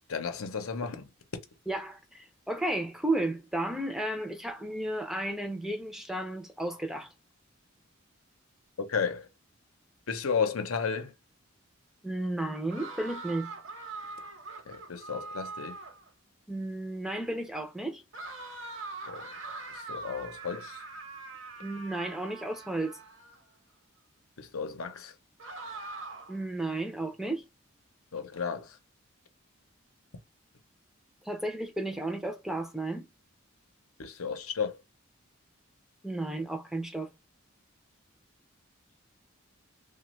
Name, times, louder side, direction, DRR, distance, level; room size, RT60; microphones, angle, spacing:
voice 1, 0.1-1.1 8.8-9.3 10.1-11.1 14.7-15.8 19.1-19.3 19.7-20.8 24.4-25.1 28.1-28.8 34.0-34.8, left 6 dB, 90° left, 0.7 m, -33 dB
voice 2, 1.7-7.1 12.0-13.5 16.5-18.0 21.6-23.0 26.3-27.5 31.2-33.1 36.0-37.1, right 1 dB, ahead, 0.4 m, -33 dB
sound 1, 12.7-16.1 18.1-23.4 25.4-26.4, right 3 dB, 65° right, 0.9 m, -43 dB
3.0 x 2.2 x 3.0 m
head